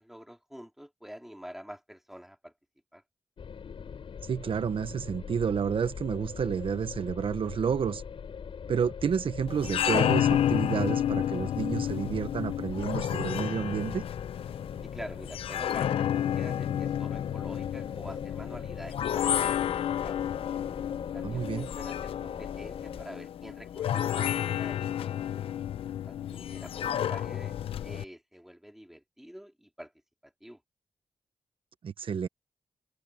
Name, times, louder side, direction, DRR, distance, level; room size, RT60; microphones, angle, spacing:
voice 1, 0.0-2.5 2.9-3.0 14.8-19.6 20.0-20.2 21.1-25.1 26.0-27.6 27.8-29.9 30.2-30.6, equal, 5° right, 3.7 m, -47 dB
sound 1, 3.4-23.0, left 6 dB, 75° left, 7.0 m, -42 dB
voice 2, 4.2-8.0 8.7-14.0 21.2-21.7 31.8-32.3, right 7 dB, 70° right, 1.1 m, -30 dB
sound 2, 9.5-28.0, left 10 dB, 90° left, 0.7 m, -31 dB
open air
cardioid pair, 50°, 9 cm